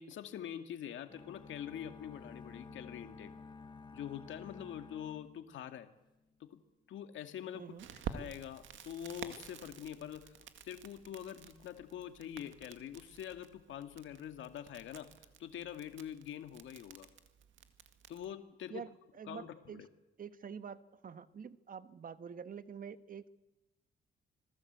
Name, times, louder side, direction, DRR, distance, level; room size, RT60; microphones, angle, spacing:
voice 1, 0.0-3.3 3.9-5.9 6.5-6.6 6.9-7.6 8.1-10.4 10.6-15.1 15.4-17.1 18.1-18.8 19.3-19.9, left 10 dB, 75° left, 8 dB, 2.1 m, -45 dB
sound 1, 1.1-6.1, left 4 dB, 25° left, 1.4 m, -52 dB
voice 2, 7.5-7.9 18.7-19.8 20.2-23.3, right 7 dB, 45° right, 12 dB, 1.3 m, -47 dB
Crackle, 7.8-18.3, right 8 dB, 75° right, 1.9 m, -50 dB
26.0 x 19.0 x 8.1 m, 0.99 s
cardioid pair, 90°, 20 cm